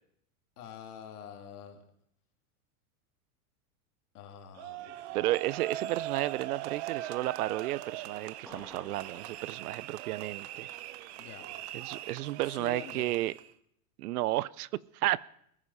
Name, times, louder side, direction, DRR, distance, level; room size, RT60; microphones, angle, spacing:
voice 1, 0.6-1.8 4.1-5.2 11.2-11.5 12.2-13.1, left 8 dB, 80° left, 5 dB, 2.9 m, -47 dB
sound 1, 4.6-13.5, right 13 dB, 45° right, 0.8 m, -41 dB
voice 2, 5.1-10.7 11.7-13.3 14.0-15.2, right 16 dB, 75° right, 23 dB, 0.7 m, -32 dB
sound 2, 8.5-10.2, equal, ahead, 1.7 m, -53 dB
20.0 x 9.9 x 5.6 m, 0.69 s
supercardioid pair, 155°, 45 cm